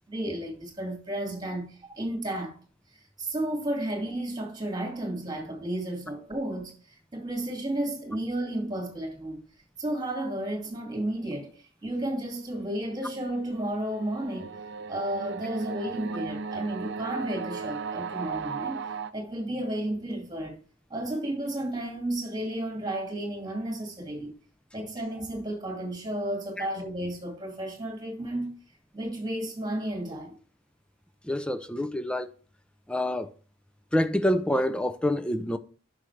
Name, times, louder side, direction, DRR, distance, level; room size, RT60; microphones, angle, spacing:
voice 1, 0.1-2.6 3.2-6.7 7.1-9.4 9.8-11.5 11.8-14.5 14.9-18.8 19.1-20.6 20.9-24.3 24.7-28.5 28.9-30.4, right 1 dB, 20° right, 2.2 m, -32 dB
sound 1, 12.4-19.1, right 5 dB, 60° right, 0.6 m, -37 dB
voice 2, 31.2-32.3 32.9-33.3 33.9-35.6, left 1 dB, 5° left, 0.5 m, -27 dB
9.7 x 6.2 x 3.3 m
head